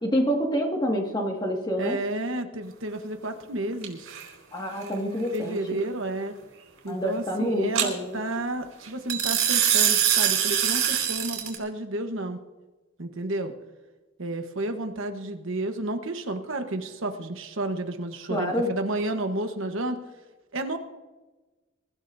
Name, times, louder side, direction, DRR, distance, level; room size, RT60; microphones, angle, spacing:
voice 1, 0.0-2.0 4.5-5.8 6.9-8.2 18.3-18.7, equal, 20° left, 1 dB, 1.9 m, -27 dB
voice 2, 1.8-4.2 4.8-6.3 6.8-12.4 13.0-13.5 14.2-20.0 20.5-20.8, right 2 dB, 70° right, 6 dB, 1.1 m, -31 dB
sound 1, 3.8-4.2 7.8-7.9 9.1-11.6, right 9 dB, 85° right, 4.1 m, -23 dB
23.0 x 15.0 x 2.7 m, 1.2 s
head